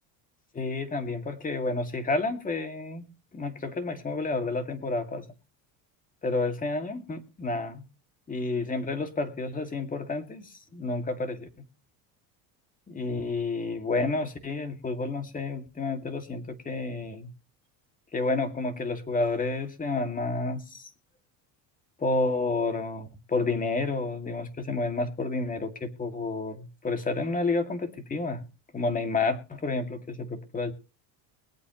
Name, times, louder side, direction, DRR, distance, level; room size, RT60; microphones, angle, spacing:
voice 1, 0.5-3.1 3.3-5.3 6.2-7.8 8.3-11.5 12.9-17.3 18.1-20.9 22.0-28.4 28.7-30.7, left 3 dB, 20° left, 6 dB, 2.3 m, -30 dB
22.0 x 8.6 x 3.1 m, 0.33 s
cardioid pair, 120°, 40 cm